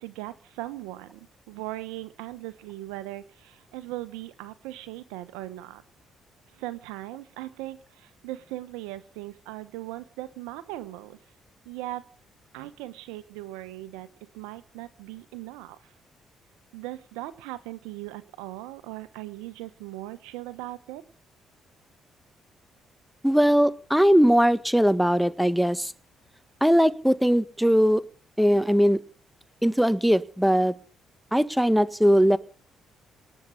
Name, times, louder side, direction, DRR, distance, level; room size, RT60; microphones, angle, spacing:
voice 1, 0.0-5.8 6.5-11.2 11.6-12.0 12.5-15.8 16.7-21.0, right 17 dB, 75° right, 14 dB, 1.1 m, -39 dB
voice 2, 23.2-25.9 26.6-28.0 28.4-29.0 29.6-30.7 31.3-32.4, equal, ahead, 15 dB, 1.5 m, -20 dB
19.0 x 7.7 x 9.8 m, 0.40 s
hypercardioid pair, 45°, 0 cm